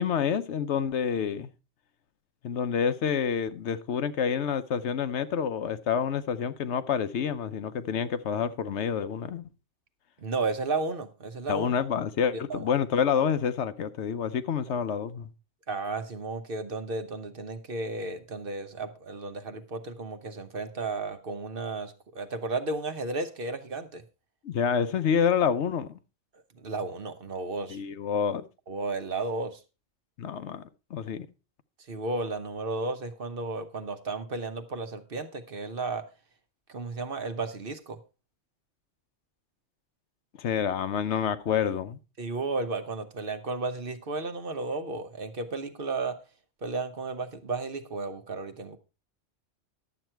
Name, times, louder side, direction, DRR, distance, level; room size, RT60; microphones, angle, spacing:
voice 1, 0.0-1.5 2.4-9.4 11.5-15.3 24.4-26.0 27.7-28.5 30.2-30.6 30.9-31.3 40.4-42.0, left 7 dB, 70° left, 1.0 m, -28 dB
voice 2, 10.2-11.7 12.5-12.7 15.7-24.0 26.5-27.8 28.7-29.6 31.9-36.1 36.7-38.0 42.2-46.2 46.6-48.8, right 3 dB, 50° right, 1.1 m, -33 dB
11.5 x 7.7 x 4.4 m
omnidirectional pair, 1.2 m